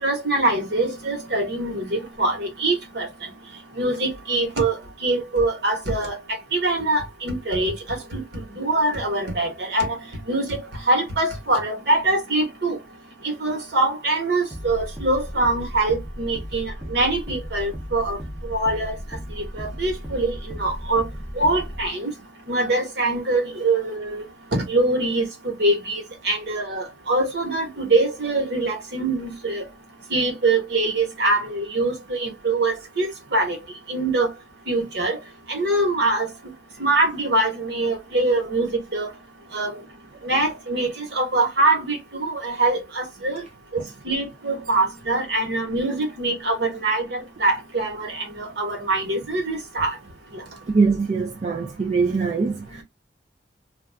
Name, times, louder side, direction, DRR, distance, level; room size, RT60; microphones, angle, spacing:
voice 1, 0.0-3.1 3.8-6.2 6.5-10.0 10.3-10.6 10.9-12.8 13.2-18.2 18.4-18.9 19.4-21.1 21.4-22.1 22.5-24.2 24.5-29.6 30.1-33.6 33.9-34.3 34.7-35.2 35.5-36.3 36.8-39.1 39.5-39.8 40.2-43.4 43.7-49.9 50.3-50.4, right 2 dB, 65° right, 1.1 m, -23 dB
sound 1, 14.5-21.9, equal, 10° right, 0.7 m, -35 dB
voice 2, 50.7-52.8, right 4 dB, 35° right, 0.3 m, -22 dB
2.4 x 2.3 x 3.3 m
head